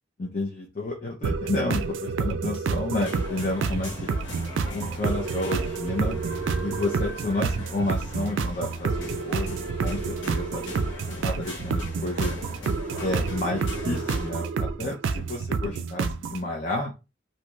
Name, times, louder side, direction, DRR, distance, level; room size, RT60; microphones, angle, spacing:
voice 1, 0.2-4.2 4.7-6.1 6.6-9.5 9.8-10.6 11.2-12.4 13.0-16.9, left 2 dB, 40° left, -1 dB, 0.6 m, -30 dB
sound 1, 1.2-16.4, right 5 dB, 90° right, 0.4 m, -29 dB
sound 2, 2.9-14.3, left 2 dB, 80° left, 1.0 m, -39 dB
2.7 x 2.4 x 3.0 m, 0.28 s
head